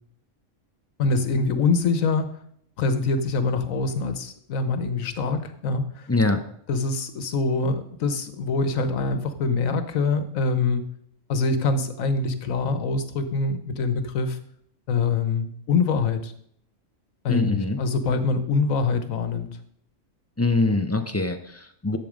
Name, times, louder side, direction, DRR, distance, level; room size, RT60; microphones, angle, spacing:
voice 1, 1.0-2.3 2.8-5.9 6.7-10.8 11.3-14.4 14.9-16.3 17.2-19.5, left 4 dB, 75° left, 10 dB, 1.4 m, -24 dB
voice 2, 6.1-6.4 17.3-17.8 20.4-22.0, left 2 dB, 15° left, 7 dB, 0.5 m, -23 dB
10.5 x 7.5 x 5.1 m, 0.67 s
omnidirectional pair, 1.4 m